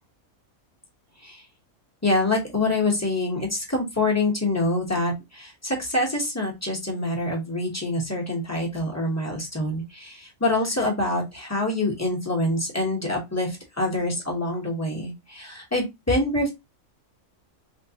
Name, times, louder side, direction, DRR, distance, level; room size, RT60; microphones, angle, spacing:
voice 1, 2.0-16.5, left 2 dB, 15° left, -2 dB, 0.8 m, -26 dB
3.2 x 2.8 x 2.7 m, 0.21 s
omnidirectional pair, 1.5 m